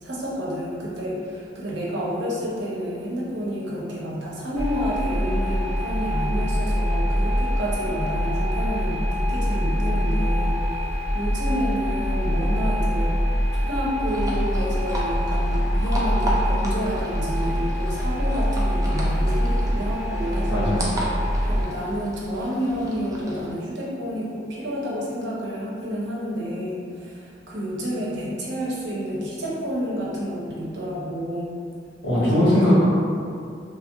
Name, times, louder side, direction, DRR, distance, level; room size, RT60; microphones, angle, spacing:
voice 1, 0.0-13.1 13.5-20.9 21.4-31.6 32.2-32.5, equal, 85° right, -5 dB, 0.7 m, -29 dB
sound 1, 4.6-21.6, equal, ahead, 1.2 m, -24 dB
sound 2, 14.1-23.5, right 1 dB, 20° right, 0.4 m, -34 dB
voice 2, 20.5-20.8 32.0-32.8, left 1 dB, 90° left, -10 dB, 1.3 m, -19 dB
2.9 x 2.5 x 2.9 m, 2.4 s
head